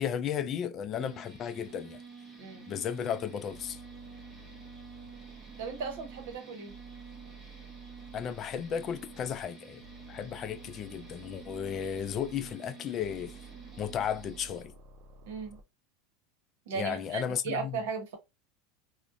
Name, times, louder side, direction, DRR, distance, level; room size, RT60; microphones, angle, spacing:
voice 1, 0.0-2.0 2.7-3.8 8.1-9.8 10.1-13.3 13.8-14.7 16.7-17.8, left 8 dB, 40° left, 0.3 m, -34 dB
sound 1, 0.9-14.6, right 4 dB, 20° right, 0.8 m, -50 dB
sound 2, 3.5-6.4 6.7-9.5 9.8-12.5 13.0-15.6, right 4 dB, 50° right, 0.5 m, -51 dB
voice 2, 5.6-6.7 15.2-15.6 16.7-18.2, right 5 dB, 70° right, 0.9 m, -36 dB
2.4 x 2.1 x 2.4 m
hypercardioid pair, 105°, 0 cm